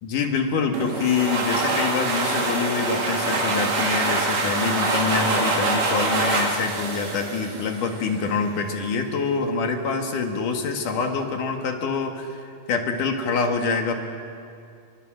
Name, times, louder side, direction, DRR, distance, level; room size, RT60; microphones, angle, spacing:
voice 1, 0.0-13.9, left 5 dB, 75° left, 4 dB, 3.5 m, -26 dB
sound 1, 0.7-8.2, right 2 dB, 60° right, 3.9 m, -25 dB
29.0 x 22.5 x 6.5 m, 2.4 s
omnidirectional pair, 3.7 m